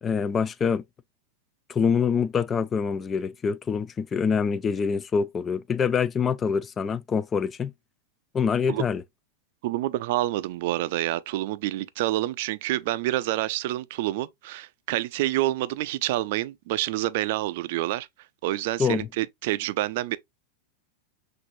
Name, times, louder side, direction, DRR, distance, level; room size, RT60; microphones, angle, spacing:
voice 1, 0.0-0.8 1.7-7.7 8.3-9.0 18.8-19.1, left 6 dB, 20° left, 0.4 m, -25 dB
voice 2, 9.6-18.1 18.4-20.2, right 16 dB, 60° right, 0.4 m, -27 dB
6.0 x 2.6 x 2.6 m
hypercardioid pair, 120°, 0 cm